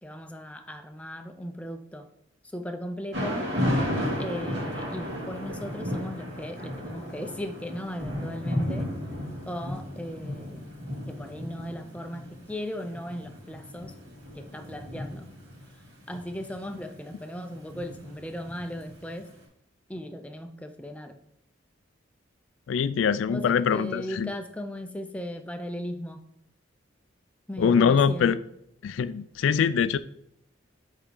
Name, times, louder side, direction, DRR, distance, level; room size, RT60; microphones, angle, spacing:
voice 1, 0.0-2.1 2.4-3.5 4.2-8.9 9.5-10.7 11.1-13.9 14.3-15.3 15.7-15.8 16.1-19.3 19.9-21.2 23.3-26.2 27.5-28.4, equal, 5° left, 0.4 m, -37 dB
Thunder / Rain, 3.1-19.1, equal, 60° right, 2.5 m, -34 dB
voice 2, 22.7-24.3 27.6-28.4 28.8-30.0, left 6 dB, 80° left, 0.3 m, -23 dB
8.0 x 3.6 x 3.8 m
head